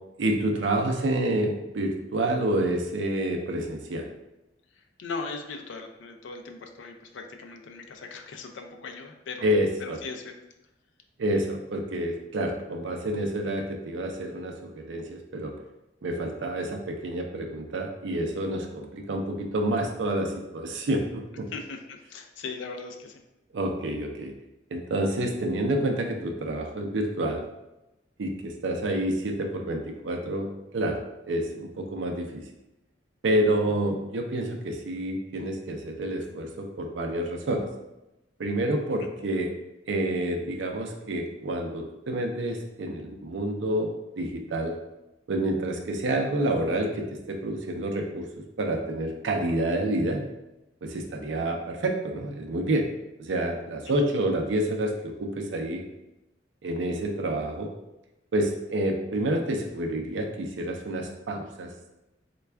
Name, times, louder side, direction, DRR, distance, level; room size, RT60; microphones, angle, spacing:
voice 1, 0.2-4.1 9.4-10.0 11.2-15.5 16.0-21.5 23.5-24.3 24.7-27.4 28.2-31.0 31.3-32.4 33.2-37.7 38.4-39.5 39.9-44.8 45.3-48.3 48.6-50.2 50.8-52.9 53.2-55.8 56.6-57.7 58.3-61.7, right 1 dB, 80° right, 2 dB, 0.5 m, -28 dB
voice 2, 5.0-9.5 9.8-10.3 21.5-23.2 39.0-39.1 53.9-54.0, left 4 dB, 90° left, 5 dB, 0.4 m, -39 dB
3.3 x 2.3 x 3.3 m, 0.94 s
head